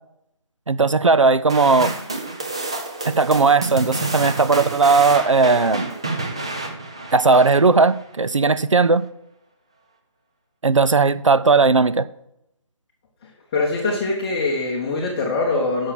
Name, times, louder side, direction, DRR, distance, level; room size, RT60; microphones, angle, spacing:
voice 1, 0.7-1.9 3.0-5.9 7.1-9.1 10.6-12.0, right 4 dB, 65° right, 0.7 m, -17 dB
sound 1, 1.5-8.0, right 2 dB, 10° right, 0.4 m, -29 dB
voice 2, 13.5-15.9, left 3 dB, 15° left, 0.9 m, -23 dB
11.0 x 6.4 x 6.0 m
figure-of-eight pair, 155°, 17 cm